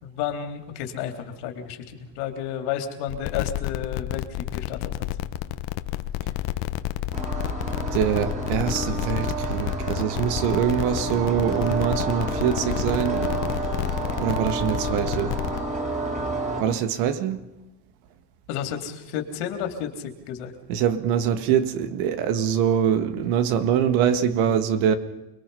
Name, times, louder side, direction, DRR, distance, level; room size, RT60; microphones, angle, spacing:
voice 1, 0.0-4.9 18.5-20.5, left 9 dB, 80° left, 3.4 m, -32 dB
sound 1, 3.1-15.6, left 14 dB, 60° left, 1.2 m, -30 dB
sound 2, 7.1-16.6, right 3 dB, 15° right, 3.7 m, -29 dB
voice 2, 7.9-13.3 14.2-15.4 16.6-17.4 20.7-25.0, right 8 dB, 80° right, 2.1 m, -24 dB
29.0 x 21.5 x 5.6 m
cardioid pair, 145°, 50 cm